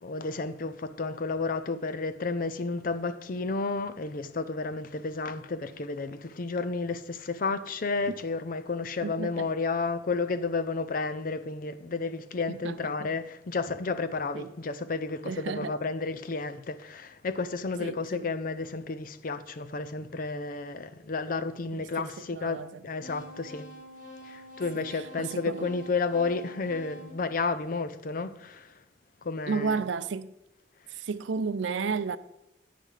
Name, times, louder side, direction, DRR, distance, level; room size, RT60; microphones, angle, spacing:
voice 1, 0.0-23.7 24.2-28.7 29.2-29.8, left 4 dB, 50° left, 0.5 m, -32 dB
voice 2, 9.0-9.5 12.5-13.1 14.3-14.5 15.2-15.8 17.8-18.3 21.7-22.8 24.7-25.7 29.5-30.3 30.9-32.2, right 5 dB, 90° right, 0.5 m, -33 dB
sound 1, 23.0-28.1, equal, 80° left, 3.6 m, -47 dB
9.8 x 9.4 x 3.3 m
head